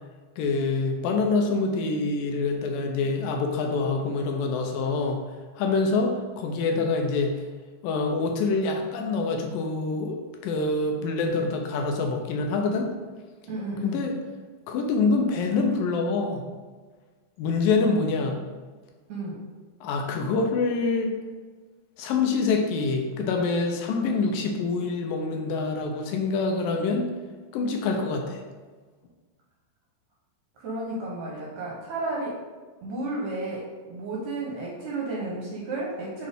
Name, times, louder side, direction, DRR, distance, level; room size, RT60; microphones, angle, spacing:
voice 1, 0.4-5.2 5.6-7.3 7.8-12.9 13.8-14.1 14.7-16.4 17.4-18.4 19.8-21.2 22.0-27.1 27.5-28.4, left 3 dB, 80° left, 2 dB, 2.4 m, -26 dB
voice 2, 13.5-14.1 18.2-18.4 19.1-19.4 30.6-32.4 32.8-36.3, right 2 dB, 70° right, -3 dB, 1.9 m, -32 dB
7.9 x 3.7 x 3.5 m, 1.4 s
omnidirectional pair, 4.2 m